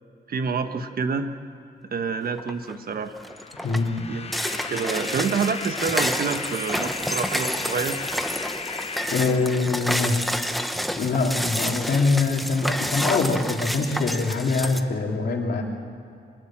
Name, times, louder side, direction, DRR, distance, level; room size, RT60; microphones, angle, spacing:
voice 1, 0.3-1.3 1.9-3.1 4.1-4.3 4.7-8.0, right 5 dB, 60° right, 8 dB, 1.3 m, -27 dB
sound 1, 2.4-2.7 3.2-14.8, equal, ahead, 1.0 m, -29 dB
sound 2, 3.2-10.2, left 5 dB, 35° left, 0.9 m, -36 dB
voice 2, 3.6-4.1 9.1-10.2 11.0-15.6, left 3 dB, 75° left, 0 dB, 3.1 m, -23 dB
25.0 x 20.0 x 7.5 m, 2.5 s
wide cardioid pair, 155°, 17 cm